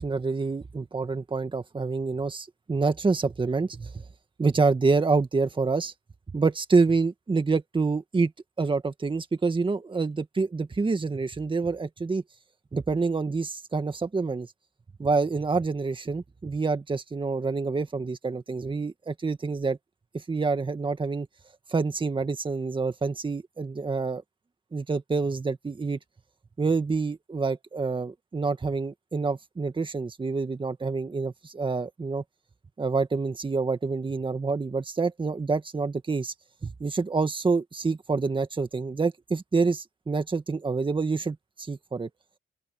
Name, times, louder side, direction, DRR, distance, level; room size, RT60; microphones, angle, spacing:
voice 1, 0.0-4.0 4.4-5.9 6.3-8.3 8.6-12.2 12.7-14.5 15.0-19.8 20.1-21.3 21.7-24.2 24.7-26.0 26.6-32.2 32.8-36.3 36.6-42.1, right 4 dB, 25° right, 1.8 m, -27 dB
open air
cardioid pair, 90°, 20 cm